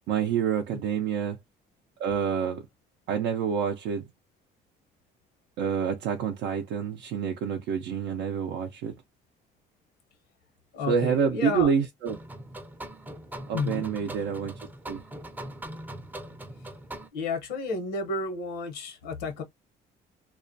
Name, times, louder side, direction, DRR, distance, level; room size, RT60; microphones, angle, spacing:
voice 1, 0.1-1.4 2.0-2.6 3.1-4.1 5.6-8.9 10.9-12.2 13.5-14.5 14.9-15.0, right 7 dB, 90° right, 0.5 m, -27 dB
voice 2, 10.7-11.7 13.5-13.9 17.1-19.4, left 3 dB, 90° left, 0.9 m, -31 dB
sound 1, 12.1-17.1, right 1 dB, 10° right, 0.4 m, -41 dB
2.3 x 2.1 x 2.5 m
cardioid pair, 110°, 17 cm